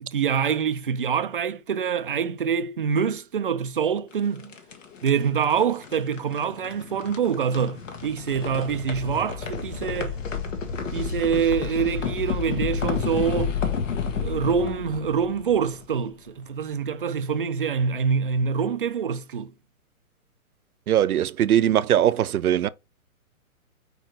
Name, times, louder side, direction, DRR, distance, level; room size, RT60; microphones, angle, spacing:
voice 1, 0.0-4.5 5.0-10.2 10.9-13.6 14.1-19.5, right 7 dB, 40° right, 0.4 m, -25 dB
sound 1, 4.1-16.2, left 6 dB, 60° left, 1.5 m, -31 dB
voice 2, 20.9-22.7, right 11 dB, 80° right, 0.7 m, -20 dB
4.9 x 4.5 x 4.5 m
hypercardioid pair, 160°, 44 cm